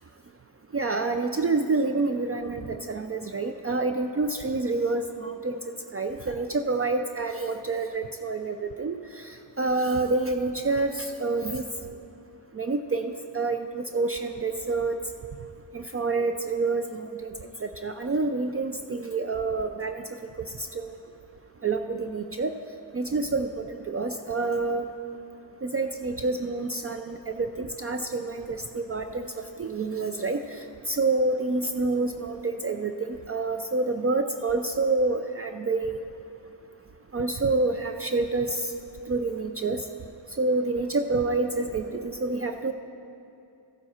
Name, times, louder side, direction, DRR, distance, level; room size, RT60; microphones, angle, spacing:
voice 1, 0.7-5.6 5.9-9.0 9.6-11.6 12.6-15.0 15.7-17.3 17.6-20.0 20.6-20.9 21.6-22.5 22.9-24.8 25.6-30.4 30.9-36.0 37.1-38.6 39.1-39.8 40.4-42.7, right 3 dB, 35° right, 6 dB, 0.4 m, -28 dB
15.0 x 7.2 x 4.3 m, 2.7 s
wide cardioid pair, 85°, 45 cm